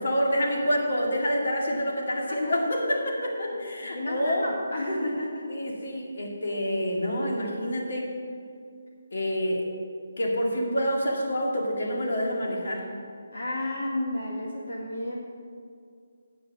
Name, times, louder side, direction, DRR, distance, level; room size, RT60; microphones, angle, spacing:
voice 1, 0.0-4.4 5.5-8.1 9.1-9.7 10.2-12.8, equal, 60° left, 0 dB, 2.0 m, -27 dB
voice 2, 3.8-5.5 13.3-15.2, left 1 dB, 75° left, -2 dB, 1.7 m, -32 dB
8.7 x 7.8 x 7.1 m, 2.3 s
hypercardioid pair, 175°, 0 cm